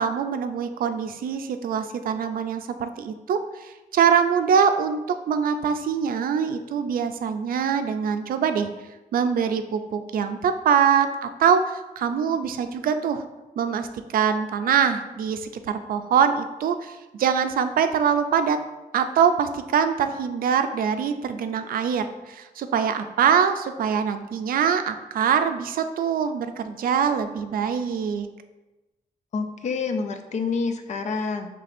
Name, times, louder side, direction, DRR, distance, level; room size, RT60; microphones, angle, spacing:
voice 1, 0.0-8.7 9.1-13.2 13.6-18.6 18.9-28.3, right 7 dB, 70° right, 8 dB, 0.4 m, -23 dB
voice 2, 29.3-31.5, left 4 dB, 50° left, 7 dB, 0.4 m, -27 dB
5.7 x 3.3 x 2.5 m, 1.1 s
wide cardioid pair, 145°, 15 cm